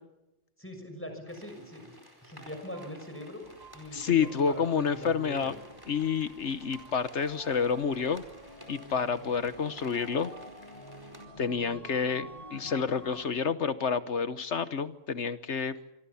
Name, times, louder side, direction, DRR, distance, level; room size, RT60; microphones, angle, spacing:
voice 1, 0.6-1.9 2.2-3.4 3.7-5.6, equal, 10° left, 5 dB, 6.4 m, -42 dB
sound 1, 1.3-11.2, equal, 15° right, 4.6 m, -54 dB
sound 2, 2.4-11.6, right 4 dB, 85° right, 5.5 m, -55 dB
sound 3, 3.4-13.3, left 1 dB, 30° left, 2.6 m, -50 dB
voice 2, 3.9-5.5 5.9-8.2 8.7-10.3 11.4-15.8, left 6 dB, 65° left, 13 dB, 1.3 m, -29 dB
26.0 x 24.0 x 7.1 m, 0.92 s
omnidirectional pair, 1.3 m